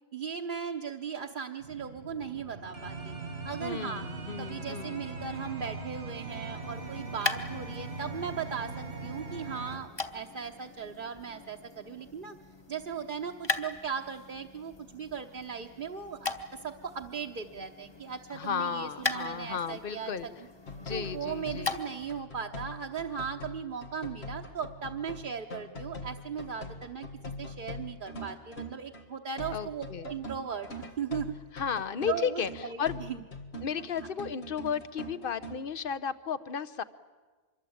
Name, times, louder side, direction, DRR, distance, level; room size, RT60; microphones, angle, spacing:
voice 1, 0.1-3.2 3.4-4.0 4.4-12.4 12.7-20.1 20.9-27.1 27.4-31.3 32.1-33.2, right 7 dB, 55° right, 2 dB, 1.1 m, -38 dB
sound 1, 1.6-9.8, right 3 dB, 85° right, 2.4 m, -40 dB
voice 2, 3.6-5.0 18.3-20.3 20.8-21.7 29.5-30.1 31.5-33.2 33.6-36.8, left 7 dB, 60° left, 16 dB, 1.1 m, -34 dB
sound 2, 6.5-22.2, left 3 dB, 25° left, 1.3 m, -40 dB
sound 3, 20.7-29.1 29.4-35.6, left 1 dB, 90° left, 2.1 m, -43 dB
25.0 x 22.5 x 8.6 m, 1.4 s
omnidirectional pair, 1.1 m